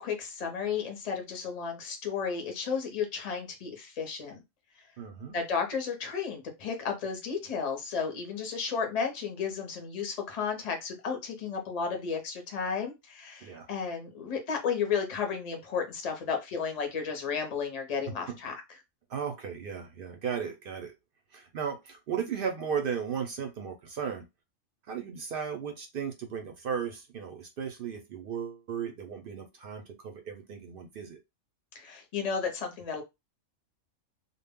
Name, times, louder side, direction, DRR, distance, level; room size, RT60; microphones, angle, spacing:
voice 1, 0.0-4.4 5.3-18.6 31.7-33.0, left 6 dB, 40° left, 0.6 m, -33 dB
voice 2, 5.0-5.4 13.4-13.7 18.3-18.4 19.1-20.9 21.3-24.3 24.9-31.2, right 7 dB, 60° right, 0.6 m, -35 dB
2.2 x 2.1 x 3.4 m
omnidirectional pair, 1.3 m